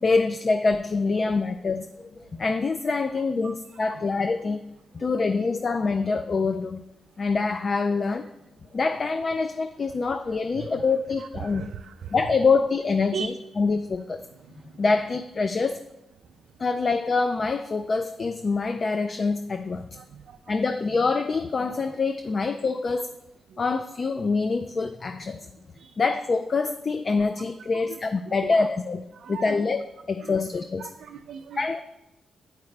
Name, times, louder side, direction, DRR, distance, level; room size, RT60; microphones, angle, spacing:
voice 1, 0.0-4.6 4.9-6.8 7.2-8.3 8.7-11.7 12.1-14.2 14.8-15.8 16.6-19.9 20.5-23.1 23.6-25.4 26.0-29.8 30.1-30.9 31.6-31.8, left 4 dB, 45° left, 8 dB, 0.3 m, -25 dB
voice 2, 3.4-4.1 5.0-5.1 8.7-8.8 10.5-10.8 11.2-12.1 13.1-13.3 14.4-14.8 16.2-16.4 19.9-20.6 23.5-23.6 25.8-26.0 27.2-27.5 27.7-28.0 28.3-28.7 29.1-29.6 30.2-30.4 30.8-31.8, right 7 dB, 75° right, 5 dB, 0.3 m, -40 dB
9.4 x 4.8 x 3.2 m, 0.93 s
cardioid pair, 75°, 0 cm